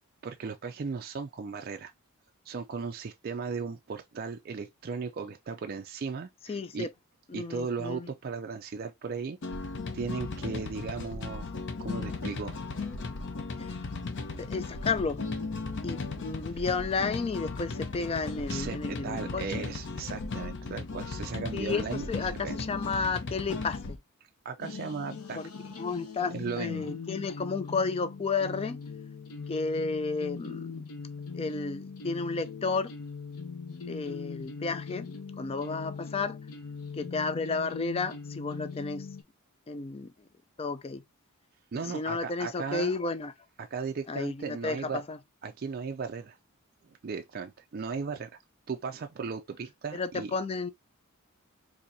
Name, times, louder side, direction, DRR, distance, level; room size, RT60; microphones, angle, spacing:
voice 1, 0.2-1.9 2.5-6.9 7.3-9.7 9.9-11.5 11.8-12.6 16.5-16.6 18.5-22.6 24.4-25.4 26.3-26.9 41.7-42.9 43.6-45.0 45.4-46.4 47.0-48.3 48.7-50.3, right 5 dB, 45° right, 0.4 m, -36 dB
voice 2, 6.5-6.9 7.3-8.1 13.6-13.8 14.4-15.3 15.8-19.4 21.5-24.0 25.4-25.5 25.8-28.8 29.5-30.7 31.3-32.9 33.9-35.1 35.4-36.4 36.9-39.1 39.7-40.1 40.6-41.0 41.8-43.3 44.1-45.2 49.9-50.7, left 4 dB, 25° left, 0.4 m, -32 dB
sound 1, 9.4-24.0, left 3 dB, 55° left, 0.7 m, -36 dB
sound 2, 24.6-39.2, left 5 dB, 80° left, 0.9 m, -41 dB
4.2 x 2.7 x 2.6 m
head